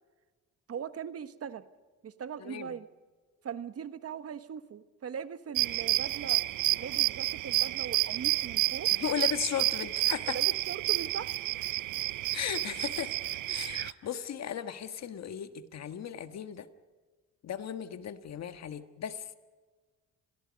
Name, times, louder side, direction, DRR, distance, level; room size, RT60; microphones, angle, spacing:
voice 1, 0.7-1.7 2.0-2.9 3.4-6.4 6.8-8.9 10.2-11.8 13.5-13.6 14.0-14.1, right 7 dB, 50° right, 12 dB, 1.3 m, -40 dB
sound 1, 5.6-13.9, right 16 dB, 80° right, 0.6 m, -30 dB
voice 2, 9.0-10.4 12.3-16.7 17.4-19.4, left 9 dB, 60° left, 10 dB, 1.5 m, -36 dB
29.0 x 22.0 x 5.3 m, 1.4 s
cardioid pair, 90°, 30 cm